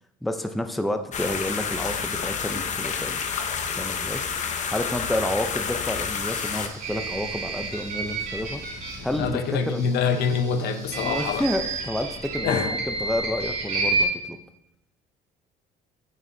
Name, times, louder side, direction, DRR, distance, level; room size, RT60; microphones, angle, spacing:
voice 1, 0.2-3.2 3.8-4.5 4.7-8.6 9.0-9.4 9.7-9.9 10.9-14.4, left 1 dB, ahead, 7 dB, 0.5 m, -30 dB
sound 1, 1.1-6.7, left 6 dB, 45° left, 0.8 m, -29 dB
sound 2, 6.2-11.8, right 2 dB, 20° right, 2.5 m, -47 dB
sound 3, 6.8-9.3 10.8-14.1, right 3 dB, 60° right, 2.8 m, -29 dB
voice 2, 9.2-11.4 12.4-12.7, left 6 dB, 75° left, 8 dB, 0.8 m, -25 dB
9.0 x 6.5 x 2.7 m, 0.86 s
cardioid pair, 110°, 17 cm